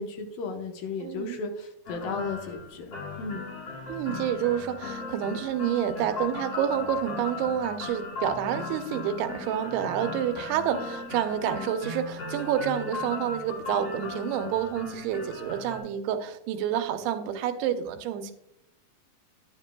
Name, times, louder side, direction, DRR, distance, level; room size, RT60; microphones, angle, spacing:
voice 1, 0.0-3.5, left 4 dB, 70° left, 3 dB, 2.4 m, -35 dB
voice 2, 1.0-1.4 3.9-18.3, right 10 dB, 85° right, 7 dB, 2.7 m, -29 dB
sound 1, 1.9-15.8, left 4 dB, 45° left, 1.7 m, -37 dB
10.5 x 9.9 x 2.2 m, 0.79 s
omnidirectional pair, 4.4 m